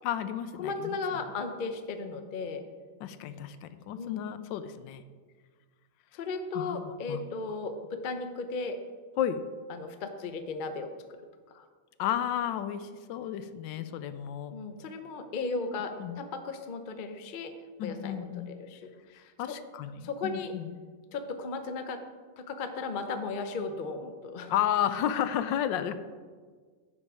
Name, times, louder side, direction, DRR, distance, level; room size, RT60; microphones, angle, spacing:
voice 1, 0.0-1.0 3.0-5.0 6.5-7.2 9.2-9.4 12.0-14.5 16.0-16.2 17.8-18.5 19.1-20.8 24.5-26.0, left 10 dB, 80° left, 12 dB, 1.3 m, -32 dB
voice 2, 0.6-2.6 3.9-4.2 6.1-8.8 9.7-10.9 11.5-11.6 14.5-17.5 17.8-19.6 20.0-20.5 21.1-22.0 22.4-24.5, left 4 dB, 55° left, 7 dB, 0.5 m, -36 dB
10.0 x 7.4 x 4.8 m, 1.5 s
omnidirectional pair, 2.0 m